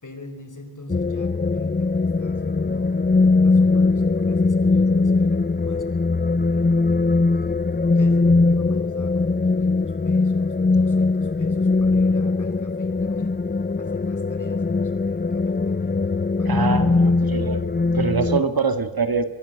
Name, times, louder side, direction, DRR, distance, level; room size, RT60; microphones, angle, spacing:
voice 1, 0.0-7.3 7.9-13.4 13.8-16.1 16.4-17.5, left 2 dB, 50° left, 8 dB, 4.5 m, -44 dB
sound 1, 0.9-18.4, left 3 dB, 25° left, 0.7 m, -20 dB
voice 2, 16.5-17.6 17.9-19.2, right 4 dB, 65° right, 9 dB, 2.3 m, -24 dB
24.5 x 22.0 x 6.6 m, 1.0 s
wide cardioid pair, 90°, 39 cm